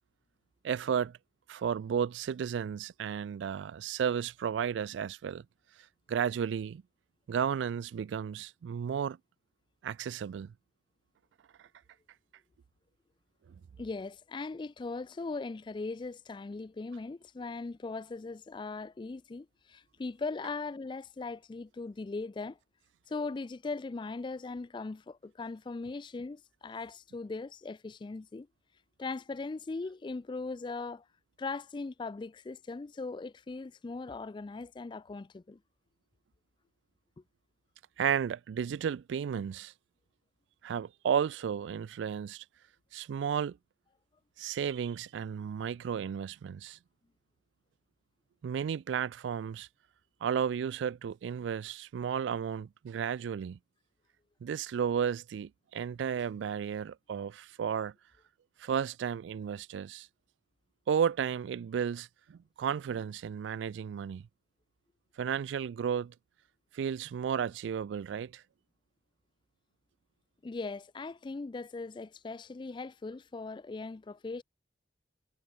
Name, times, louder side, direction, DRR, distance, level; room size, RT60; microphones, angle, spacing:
voice 1, 0.6-1.2 1.5-5.4 6.1-6.8 7.3-9.2 9.8-10.5 38.0-39.7 40.6-42.4 42.9-43.6 44.4-46.8 48.4-49.7 50.2-53.6 54.4-57.9 58.6-60.1 60.9-64.3 65.2-66.1 66.7-68.4, right 7 dB, 85° right, 0.3 m, -33 dB
voice 2, 13.8-22.6 23.1-28.5 29.0-31.0 31.4-35.6 70.4-74.4, left 3 dB, 25° left, 0.3 m, -39 dB
head